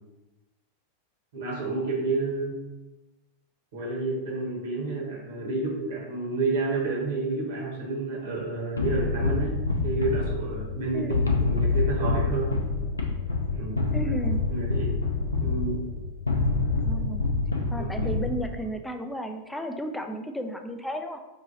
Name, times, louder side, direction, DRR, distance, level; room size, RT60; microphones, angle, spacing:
voice 1, 1.3-2.6 3.7-11.1 11.4-12.5 13.5-13.9 14.5-15.0 15.4-15.9 17.7-18.1, right 3 dB, 55° right, -1 dB, 1.1 m, -30 dB
sound 1, 8.8-18.7, left 3 dB, 80° left, 0.4 m, -27 dB
voice 2, 13.9-14.5 16.8-17.3 17.7-21.2, right 1 dB, 5° left, 5 dB, 0.4 m, -33 dB
5.0 x 2.7 x 2.8 m, 1.1 s
figure-of-eight pair, 90°, 0 cm